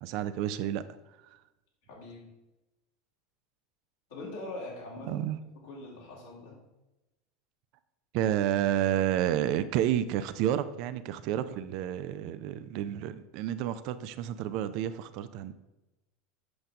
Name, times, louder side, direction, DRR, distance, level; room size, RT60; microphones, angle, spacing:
voice 1, 0.0-0.8 5.1-5.4 8.1-15.5, right 11 dB, 55° right, 12 dB, 0.5 m, -30 dB
voice 2, 1.9-2.3 4.1-5.2 5.6-6.6, left 2 dB, 65° left, -4 dB, 2.9 m, -42 dB
7.9 x 6.4 x 3.6 m, 0.99 s
figure-of-eight pair, 80°, 0 cm